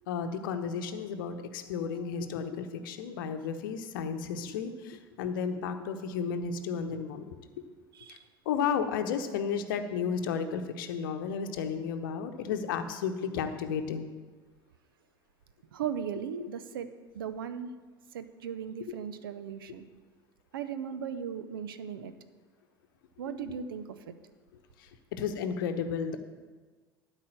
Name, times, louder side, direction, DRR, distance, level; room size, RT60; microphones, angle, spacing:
voice 1, 0.1-7.4 8.1-8.2 8.5-14.1 16.4-16.5 25.1-26.2, left 6 dB, 60° left, 8 dB, 0.9 m, -33 dB
voice 2, 15.7-16.9 17.1-17.7 18.1-19.8 20.5-22.1 23.2-24.1, right 8 dB, 65° right, 12 dB, 0.7 m, -37 dB
12.5 x 4.9 x 7.6 m, 1.4 s
figure-of-eight pair, 70°, 12 cm